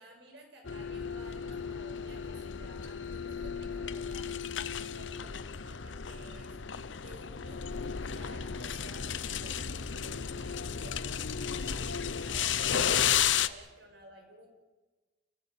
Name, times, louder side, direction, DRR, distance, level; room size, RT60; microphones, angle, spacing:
voice 1, 0.0-7.7 8.0-14.5, right 1 dB, 65° right, 3 dB, 6.4 m, -54 dB
sound 1, 0.6-13.5, left 8 dB, 75° left, 0.8 m, -33 dB
29.5 x 18.0 x 6.9 m, 1.2 s
head